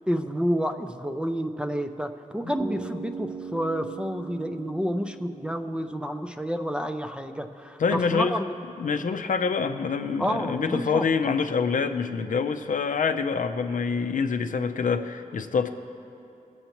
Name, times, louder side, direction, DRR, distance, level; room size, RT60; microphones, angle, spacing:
voice 1, 0.1-8.6 10.2-11.0, equal, 5° right, 7 dB, 0.4 m, -29 dB
Bass guitar, 2.6-6.7, right 4 dB, 35° right, 0.9 m, -39 dB
voice 2, 7.8-8.4 8.8-15.7, left 5 dB, 70° left, 8 dB, 0.5 m, -26 dB
19.5 x 8.0 x 3.0 m, 2.8 s
wide cardioid pair, 110°, 14 cm